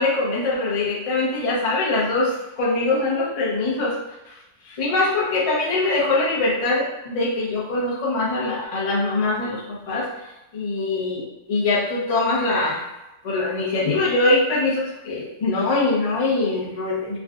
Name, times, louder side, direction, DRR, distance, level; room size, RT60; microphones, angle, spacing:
voice 1, 0.0-4.0 4.2-4.4 4.6-10.1 10.5-11.2 11.5-12.9 13.2-17.2, left 2 dB, 35° left, -6 dB, 0.6 m, -23 dB
3.6 x 2.3 x 2.4 m, 0.94 s
omnidirectional pair, 1.6 m